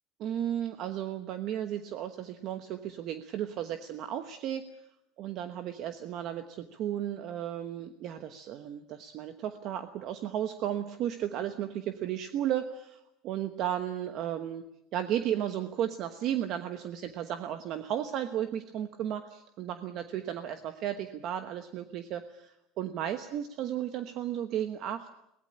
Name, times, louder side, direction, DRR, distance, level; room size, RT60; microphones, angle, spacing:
voice 1, 0.2-4.6 5.2-14.6 14.9-25.1, right 10 dB, 40° right, 8 dB, 1.1 m, -34 dB
23.0 x 19.0 x 8.8 m, 0.82 s
cardioid pair, 180°, 0 cm